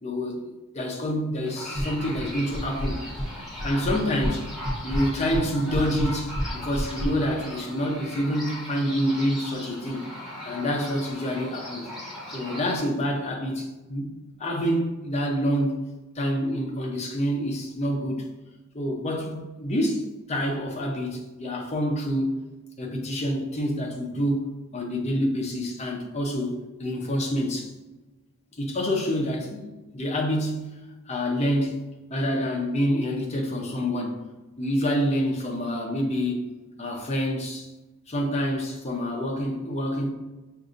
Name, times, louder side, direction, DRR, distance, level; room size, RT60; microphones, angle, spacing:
voice 1, 0.0-3.0 3.6-4.5 4.8-10.1 10.4-11.9 12.3-14.1 14.4-15.8 16.1-18.3 18.7-22.3 22.8-27.7 28.6-30.7 31.1-31.8 32.1-34.3 34.6-36.5 36.8-37.7 38.1-40.1, equal, 30° left, 0.7 m, -27 dB
sound 1, 1.4-12.8, left 1 dB, ahead, 1.0 m, -39 dB
sound 2, 1.7-2.3 2.5-3.3 3.6-4.4 4.6-7.1, equal, 45° right, 0.8 m, -28 dB
6.2 x 2.6 x 2.5 m
head